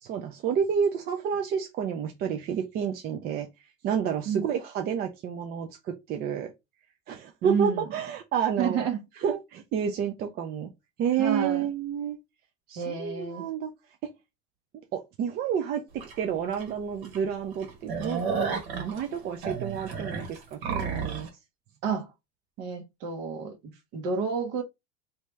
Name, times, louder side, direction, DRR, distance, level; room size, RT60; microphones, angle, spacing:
voice 1, 0.0-3.5 3.8-6.5 7.1-8.9 9.2-10.7 11.0-12.2 12.7-13.7 14.9-15.8 16.2-18.3 18.7-21.3, right 7 dB, 30° right, 0.4 m, -30 dB
voice 2, 7.4-7.9 8.6-9.0 11.2-11.6 12.8-13.4 21.8-22.1 22.6-23.6 23.9-24.6, right 6 dB, 55° right, 1.2 m, -30 dB
sound 1, 16.0-16.1 16.6-16.7 17.0-17.2 17.5-21.3, right 5 dB, 80° right, 1.7 m, -32 dB
3.1 x 2.8 x 3.3 m
supercardioid pair, 140°, 31 cm